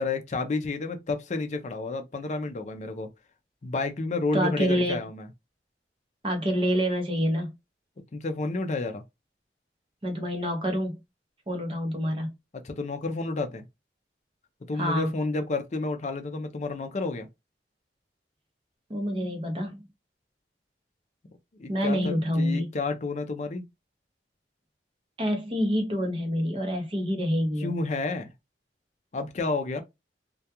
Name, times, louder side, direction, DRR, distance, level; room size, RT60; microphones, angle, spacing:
voice 1, 0.0-3.1 3.6-5.3 8.1-9.0 12.6-13.6 14.7-17.3 21.6-23.7 27.6-28.3 29.1-29.8, left 3 dB, 40° left, 0.4 m, -30 dB
voice 2, 4.3-5.0 6.2-7.5 10.0-11.0 11.5-12.3 14.8-15.1 18.9-19.8 21.7-22.6 25.2-27.7, equal, 30° right, 0.8 m, -27 dB
2.3 x 2.2 x 2.8 m
head